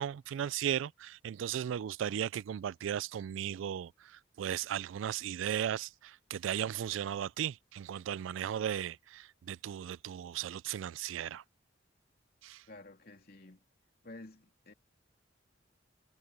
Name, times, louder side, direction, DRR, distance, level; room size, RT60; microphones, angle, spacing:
voice 1, 0.0-11.4 12.4-12.6, right 9 dB, 85° right, 0.3 m, -36 dB
voice 2, 12.7-13.6 14.0-14.7, left 2 dB, 50° left, 3.2 m, -51 dB
head